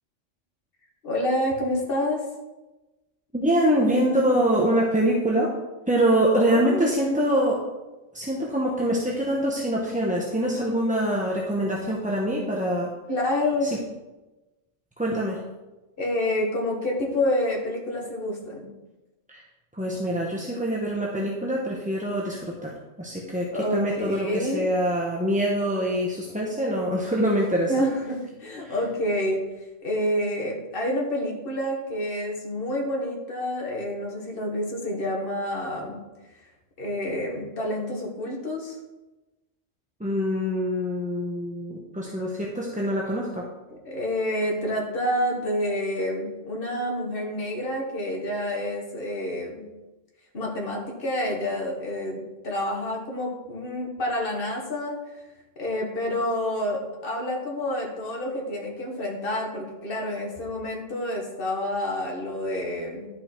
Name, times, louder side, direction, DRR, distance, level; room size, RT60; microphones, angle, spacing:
voice 1, 1.0-2.2 6.4-6.8 13.1-13.7 16.0-18.7 23.5-24.7 27.7-29.4 29.8-36.0 36.8-38.8 43.7-49.7 50.3-55.0 55.6-63.1, left 1 dB, 45° left, -1 dB, 1.8 m, -28 dB
voice 2, 3.3-5.5 5.9-7.6 8.1-12.9 13.6-13.7 15.0-15.4 19.3-19.4 19.7-22.7 23.0-27.7 28.6-28.7 40.0-43.5, equal, 5° right, -3 dB, 0.8 m, -24 dB
11.5 x 5.8 x 4.5 m, 1.1 s
omnidirectional pair, 1.3 m